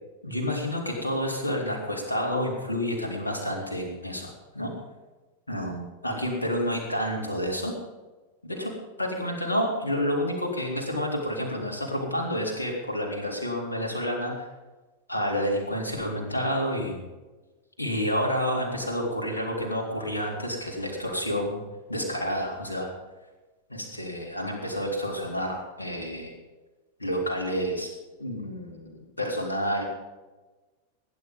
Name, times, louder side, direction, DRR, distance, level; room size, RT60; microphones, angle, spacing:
voice 1, 0.2-4.7 5.5-7.7 8.4-14.5 15.1-17.0 17.8-21.6 21.9-22.9 23.7-26.3 27.0-27.9 28.2-29.8, equal, 80° left, 1 dB, 3.8 m, -29 dB
18.5 x 10.5 x 5.4 m, 1.2 s
figure-of-eight pair, 90°, 0 cm